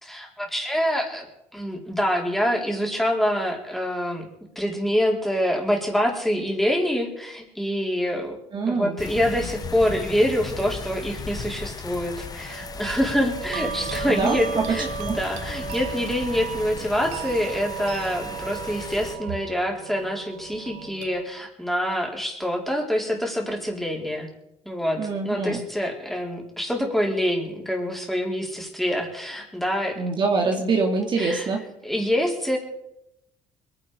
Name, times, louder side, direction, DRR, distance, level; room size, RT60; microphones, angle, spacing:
voice 1, 0.0-4.3 4.6-8.4 8.7-24.3 24.6-25.0 25.2-30.0 31.2-31.5 31.8-32.6, equal, ahead, 0 dB, 4.2 m, -26 dB
voice 2, 8.5-9.0 14.1-14.8 15.0-15.2 25.0-25.6 30.0-31.6, right 4 dB, 45° right, 2 dB, 2.4 m, -24 dB
sound 1, 9.0-19.2, left 5 dB, 35° left, 1.3 m, -36 dB
sound 2, 12.1-21.2, right 8 dB, 80° right, 1.0 m, -35 dB
21.5 x 10.0 x 5.0 m, 0.83 s
supercardioid pair, 85°, 12 cm